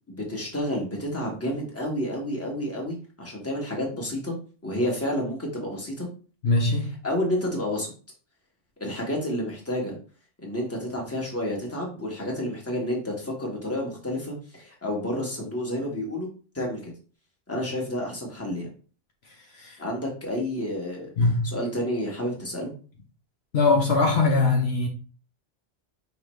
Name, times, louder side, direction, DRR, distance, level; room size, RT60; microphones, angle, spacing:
voice 1, 0.1-4.3 4.6-6.1 7.0-7.9 8.8-10.0 10.4-16.3 16.5-16.9 17.5-18.7 19.8-21.1 21.4-22.7, left 1 dB, 10° left, 1.3 m, -30 dB
voice 2, 6.4-7.0 19.5-19.8 21.2-21.5 23.5-24.9, left 3 dB, 65° left, 0.9 m, -22 dB
5.0 x 3.1 x 3.1 m
omnidirectional pair, 1.2 m